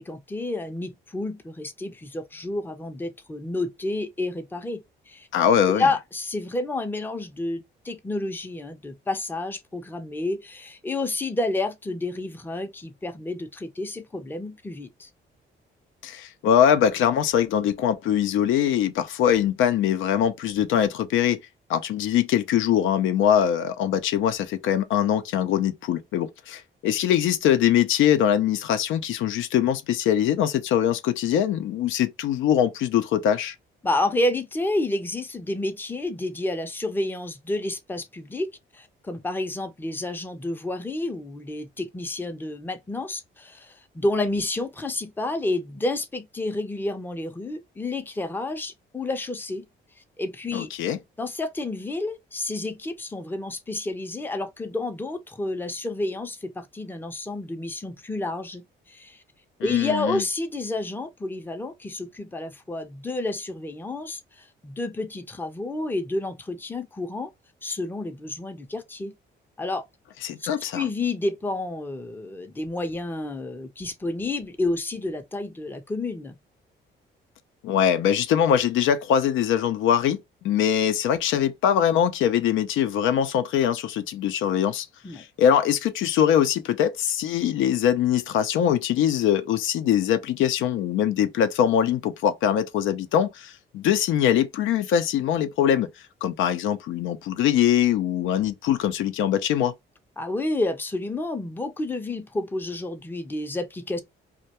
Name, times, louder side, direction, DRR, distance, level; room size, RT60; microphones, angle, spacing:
voice 1, 0.0-5.3 5.7-15.1 33.8-49.6 50.2-50.7 51.2-59.2 59.6-67.3 67.6-69.1 69.6-69.8 70.4-76.4 85.0-85.2 100.2-104.0, left 2 dB, 10° left, 0.5 m, -30 dB
voice 2, 5.3-5.9 16.0-21.4 21.7-33.5 50.5-51.0 59.6-60.2 70.2-70.8 77.6-80.2 80.4-84.9 85.1-95.9 96.2-99.7, left 9 dB, 80° left, 0.4 m, -22 dB
2.2 x 2.1 x 2.8 m
cardioid pair, 90°, 20 cm